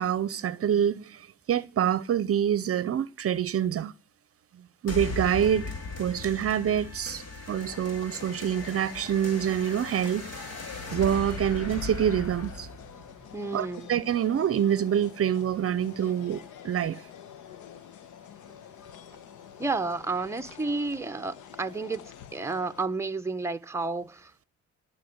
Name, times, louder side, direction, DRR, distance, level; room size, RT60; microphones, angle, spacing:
voice 1, 0.0-3.9 4.5-5.7 6.0-10.3 10.9-12.7 13.5-17.0, right 9 dB, 50° right, 0.7 m, -26 dB
sound 1, 4.9-13.9, left 2 dB, 55° left, 3.5 m, -38 dB
sound 2, 7.6-22.9, left 9 dB, 85° left, 1.1 m, -47 dB
voice 2, 13.3-13.9 19.6-22.0 22.3-24.4, right 3 dB, 10° right, 0.9 m, -31 dB
18.0 x 7.0 x 9.5 m
cardioid pair, 90°, 30 cm